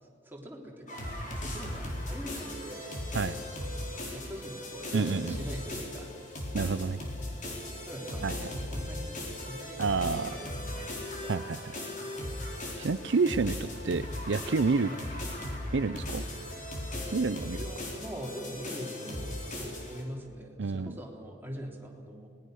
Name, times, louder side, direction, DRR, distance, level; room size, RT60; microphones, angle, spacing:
voice 1, 0.2-2.9 4.1-6.1 7.9-8.4 8.7-12.1 14.8-15.1 17.6-22.3, equal, 10° right, -1 dB, 3.2 m, -43 dB
sound 1, 0.9-20.0, left 1 dB, 45° left, 4.3 m, -38 dB
voice 2, 4.9-5.4 6.5-7.0 8.2-8.5 9.8-10.3 11.3-11.6 12.8-14.9 15.7-16.2 17.1-17.6 20.6-20.9, right 4 dB, 70° right, 13 dB, 0.5 m, -29 dB
26.5 x 19.5 x 6.5 m, 2.2 s
head